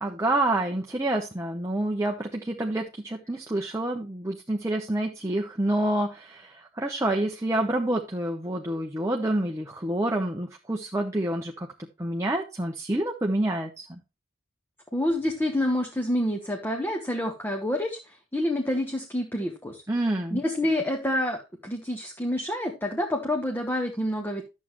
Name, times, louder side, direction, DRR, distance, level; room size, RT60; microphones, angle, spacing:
voice 1, 0.0-11.7 12.0-14.0 19.9-20.4, right 1 dB, 15° right, 2 dB, 0.9 m, -28 dB
voice 2, 14.9-19.8 20.3-24.4, left 1 dB, 10° left, 2 dB, 1.1 m, -28 dB
12.0 x 7.5 x 3.1 m, 0.27 s
head